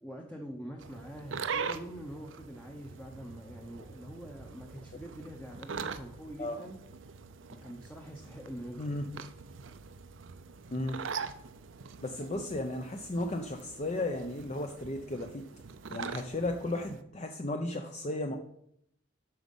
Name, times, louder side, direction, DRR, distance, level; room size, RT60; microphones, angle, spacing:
voice 1, 0.0-6.8 7.5-9.0, equal, 5° left, 1 dB, 0.8 m, -45 dB
sound 1, 0.8-17.0, right 5 dB, 80° right, 0.6 m, -43 dB
voice 2, 10.7-11.0 12.0-15.4 15.9-18.4, left 1 dB, 35° left, 4 dB, 0.6 m, -34 dB
7.9 x 6.2 x 5.4 m, 0.73 s
head